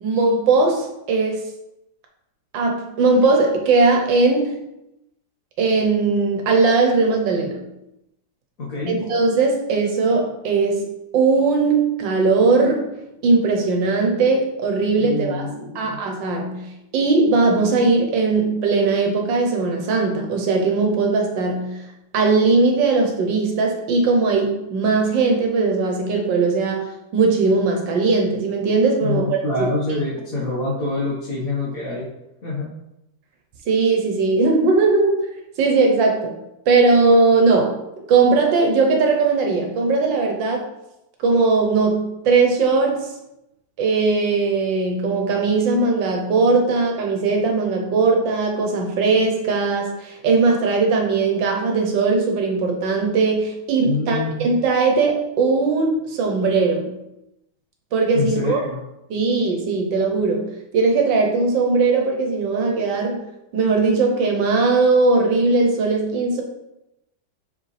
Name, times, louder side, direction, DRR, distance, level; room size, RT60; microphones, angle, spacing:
voice 1, 0.0-1.5 2.5-4.5 5.6-7.6 8.9-10.8 11.1-12.9 13.2-15.5 15.7-21.8 22.1-30.0 33.7-35.2 35.6-36.4 36.7-37.8 38.1-40.7 41.2-43.1 43.8-57.0 57.9-58.6 59.1-63.2 63.5-66.4, right 3 dB, 75° right, 2 dB, 1.6 m, -19 dB
voice 2, 8.6-9.0 15.0-16.0 29.0-32.1 32.4-32.7 53.8-54.5 58.1-58.8, left 3 dB, 50° left, -8 dB, 1.7 m, -26 dB
5.7 x 5.1 x 3.3 m, 0.88 s
omnidirectional pair, 2.0 m